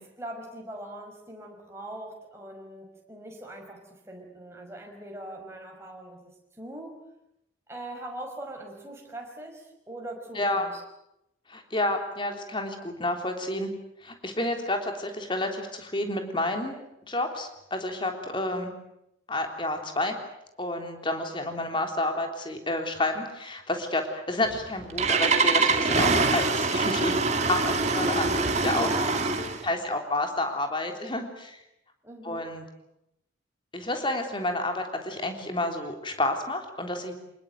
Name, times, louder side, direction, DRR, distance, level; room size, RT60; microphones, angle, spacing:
voice 1, 0.2-7.0 7.7-10.8 28.6-29.9 32.0-32.4, right 1 dB, 15° right, 1 dB, 5.7 m, -41 dB
voice 2, 10.4-10.7 11.5-13.7 14.0-18.7 19.3-20.2 20.6-28.9 29.6-31.6 32.2-32.6 33.7-37.1, left 2 dB, 25° left, 5 dB, 3.5 m, -30 dB
Engine starting, 24.5-29.6, right 3 dB, 35° right, 2.3 m, -24 dB
26.5 x 20.5 x 9.3 m, 0.85 s
head